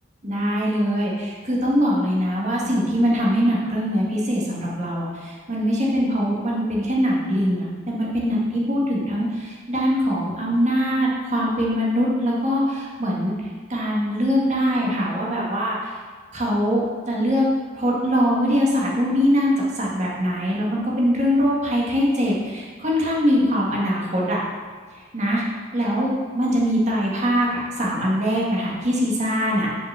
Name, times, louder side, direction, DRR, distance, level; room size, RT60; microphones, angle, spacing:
voice 1, 0.2-13.3 13.7-15.9 16.3-17.5 17.7-24.4 25.1-25.4 25.7-26.1 26.3-29.7, equal, 35° right, -4 dB, 1.9 m, -22 dB
7.1 x 5.3 x 6.7 m, 1.5 s
head